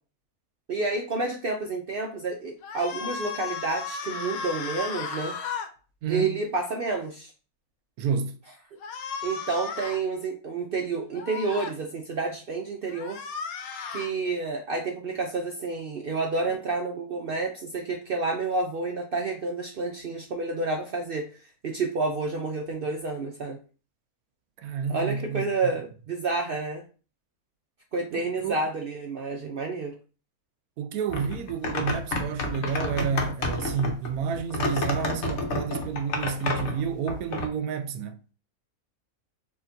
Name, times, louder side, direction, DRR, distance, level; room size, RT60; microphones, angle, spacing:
voice 1, 0.7-5.4 6.1-7.3 9.2-13.2 13.9-21.3 21.6-23.6 24.9-26.8 27.9-29.9, right 3 dB, 60° right, 0.6 m, -29 dB
sound 1, 2.6-5.7 8.8-10.0 11.1-11.7 12.9-14.1, left 5 dB, 75° left, 1.1 m, -35 dB
voice 2, 6.0-6.4 8.0-8.4 24.6-25.4 28.1-28.6 30.8-38.2, right 6 dB, 80° right, 1.1 m, -30 dB
sound 2, 31.1-37.5, left 2 dB, 55° left, 1.0 m, -30 dB
6.8 x 2.9 x 2.6 m
omnidirectional pair, 1.6 m